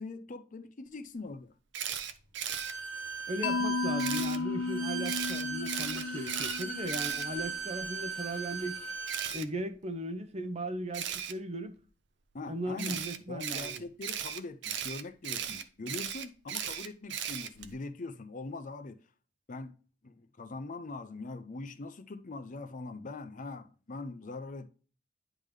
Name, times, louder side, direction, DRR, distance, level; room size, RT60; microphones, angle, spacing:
voice 1, 0.0-1.5 12.3-13.0 13.3-19.0 19.5-19.7 20.0-24.7, left 3 dB, 45° left, 0.6 m, -42 dB
Camera, 1.7-2.7 4.0-4.4 5.0-7.8 9.1-9.4 10.9-11.3 12.8-17.7, right 9 dB, 65° right, 0.7 m, -36 dB
Bowed string instrument, 2.5-9.3, right 4 dB, 90° right, 1.7 m, -39 dB
voice 2, 3.3-8.8 9.3-11.8 12.5-13.8, right 1 dB, 35° right, 0.8 m, -37 dB
Mallet percussion, 3.4-7.4, left 4 dB, 85° left, 0.4 m, -34 dB
10.5 x 3.7 x 3.2 m
head